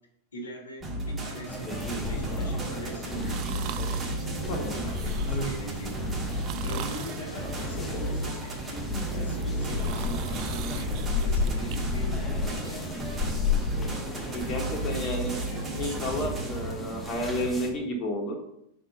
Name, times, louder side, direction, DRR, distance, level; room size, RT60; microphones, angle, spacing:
voice 1, 0.3-3.5 4.3-13.1, right 1 dB, 70° left, 2 dB, 1.4 m, -42 dB
sound 1, 0.8-17.5, right 1 dB, 20° right, 1.7 m, -33 dB
sound 2, 1.5-17.7, left 3 dB, 10° left, 1.2 m, -33 dB
sound 3, 3.2-4.2 4.8-5.5 6.2-7.3 7.9-8.8 9.3-11.8 12.2-12.3, right 11 dB, 40° right, 0.4 m, -42 dB
voice 2, 14.3-18.4, equal, 35° left, 1 dB, 1.3 m, -31 dB
4.8 x 4.3 x 5.3 m, 0.78 s
figure-of-eight pair, 90°, 0 cm